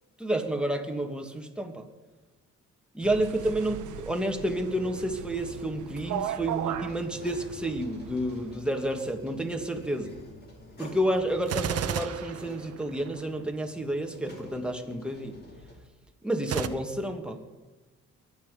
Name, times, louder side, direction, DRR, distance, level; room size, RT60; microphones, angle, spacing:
voice 1, 0.2-1.9 2.9-10.1 10.8-15.4 16.2-17.4, right 1 dB, 5° right, 3 dB, 2.1 m, -30 dB
sound 1, 3.0-8.5, right 10 dB, 80° right, 1.1 m, -38 dB
sound 2, 4.9-15.8, left 1 dB, 35° left, 3.9 m, -49 dB
Gunshot gunfire, 11.4-13.2 16.4-16.7, right 9 dB, 55° right, 1.0 m, -32 dB
22.5 x 8.9 x 5.2 m, 1.2 s
cardioid pair, 90°, 30 cm